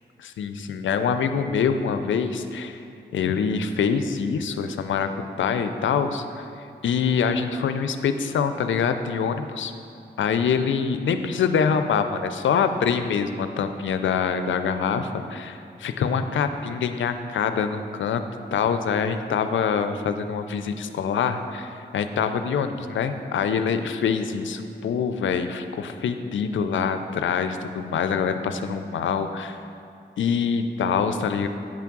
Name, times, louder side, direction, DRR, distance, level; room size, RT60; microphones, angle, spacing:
voice 1, 0.2-2.8 3.1-5.1 5.4-9.7 10.2-18.2 18.5-29.6 30.2-31.5, left 6 dB, 90° left, 9 dB, 0.4 m, -25 dB
8.7 x 3.5 x 5.9 m, 2.6 s
cardioid pair, 65°, 19 cm